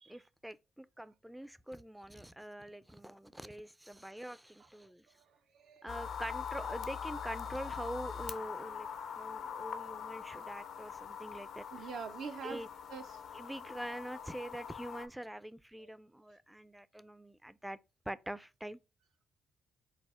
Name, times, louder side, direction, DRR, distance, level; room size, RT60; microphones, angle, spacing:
voice 1, 0.0-5.1 5.8-11.9 12.4-12.7 13.3-17.8 18.1-18.8, right 1 dB, 5° right, 0.3 m, -45 dB
voice 2, 5.1-6.0 11.7-12.6 12.9-13.2 15.8-15.9, right 6 dB, 70° right, 0.5 m, -45 dB
sound 1, 5.9-15.1, left 7 dB, 65° left, 0.5 m, -43 dB
4.8 x 2.0 x 4.1 m
cardioid pair, 90°, 0 cm